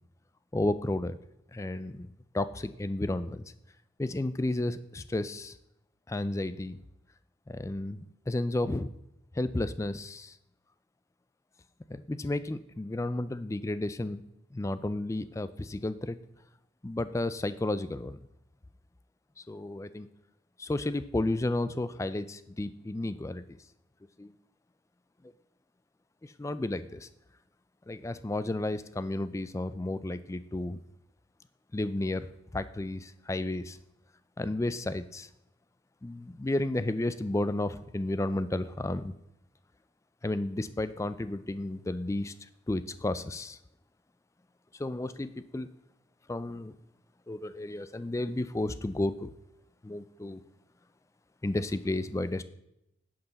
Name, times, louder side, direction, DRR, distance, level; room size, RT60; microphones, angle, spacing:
voice 1, 0.5-1.2 1.5-2.1 2.3-3.4 4.0-5.6 6.1-6.8 7.5-8.0 8.3-8.9 9.4-10.3 11.9-14.2 14.5-16.2 16.8-18.2 19.5-20.1 20.6-23.4 24.2-24.3 26.2-27.1 27.9-30.8 31.7-32.3 32.5-33.8 34.4-35.3 36.0-39.1 40.2-42.3 42.7-43.6 44.8-45.7 46.3-46.7 47.3-49.3 49.8-50.4 51.4-52.4, left 2 dB, 15° left, 14 dB, 0.3 m, -32 dB
11.5 x 7.8 x 4.0 m, 0.83 s
head